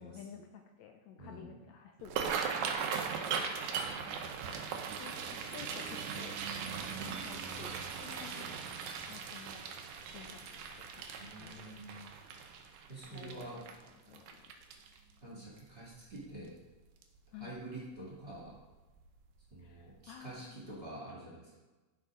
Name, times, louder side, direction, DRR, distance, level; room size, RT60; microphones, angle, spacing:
voice 1, 0.0-2.8 3.1-8.5 9.1-9.6 10.1-11.8 13.1-13.8 14.0-14.5 17.3-17.6 19.6-20.5, left 8 dB, 80° left, 4 dB, 1.7 m, -53 dB
voice 2, 1.2-1.5 11.2-12.1 12.9-13.6 15.2-16.6 17.4-18.6 19.5-21.6, right 2 dB, 20° right, -6 dB, 2.0 m, -47 dB
sound 1, 2.0-15.1 15.6-15.9 16.2-16.6 17.0-17.2 18.4-18.6 18.9-19.1 19.5-19.6, right 6 dB, 75° right, 2.3 m, -39 dB
12.5 x 5.7 x 3.8 m, 1.2 s
omnidirectional pair, 3.7 m